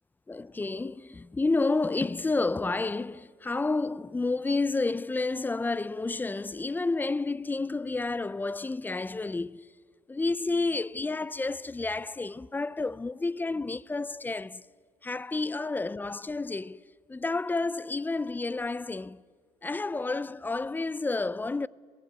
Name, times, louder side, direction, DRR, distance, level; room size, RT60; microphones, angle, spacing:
voice 1, 0.3-9.6 10.1-14.6 15.0-16.8 17.1-19.2 19.6-21.7, left 3 dB, 15° left, 0.4 m, -30 dB
19.0 x 17.5 x 8.8 m
supercardioid pair, 80°, 13 cm